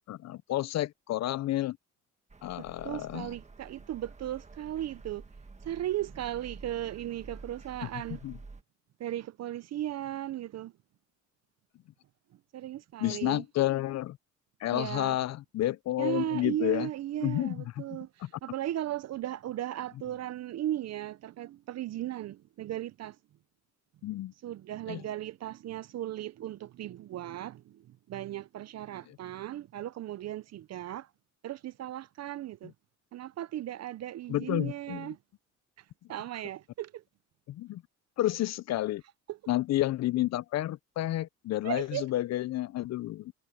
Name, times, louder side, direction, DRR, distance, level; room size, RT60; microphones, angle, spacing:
voice 1, 0.1-1.8 2.4-3.3 7.8-7.9 8.2-8.4 13.0-14.2 14.6-16.9 17.2-17.6 17.9-18.3 24.0-24.3 24.9-25.0 29.1-29.2 34.3-35.1 37.5-37.8 38.2-39.0 39.5-43.3, left 15 dB, 60° left, 0.5 m, -30 dB
sound 1, 2.3-8.6, right 3 dB, 25° right, 1.7 m, -50 dB
voice 2, 2.6-5.2 5.6-8.2 9.0-10.7 12.5-13.4 14.7-15.2 16.0-23.2 24.4-27.8 28.1-31.1 31.4-32.7 33.1-35.2 36.1-37.0 39.3-39.4 41.6-42.1, right 13 dB, 60° right, 0.6 m, -36 dB
cardioid pair, 90°, 30 cm